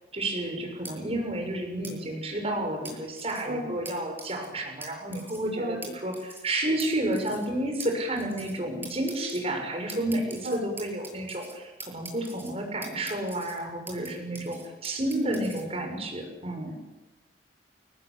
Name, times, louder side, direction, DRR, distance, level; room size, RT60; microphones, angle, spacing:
voice 1, 0.1-16.8, right 1 dB, 35° right, 3 dB, 6.9 m, -31 dB
sound 1, 0.8-0.9 1.8-1.9 2.8-3.4 3.8-3.9 4.2-4.5 4.8-4.9 5.1-5.5 5.8-5.9 6.1-6.5 6.8-6.9 7.1-7.5 7.8-7.9 8.2-8.6 8.8-9.4 9.9-11.5 11.8-12.5 12.8-14.1 14.3-15.6, right 3 dB, 10° right, 7.9 m, -42 dB
voice 2, 15.0-15.5, right 1 dB, 50° right, 2 dB, 4.8 m, -32 dB
29.5 x 19.5 x 8.7 m, 1.1 s
head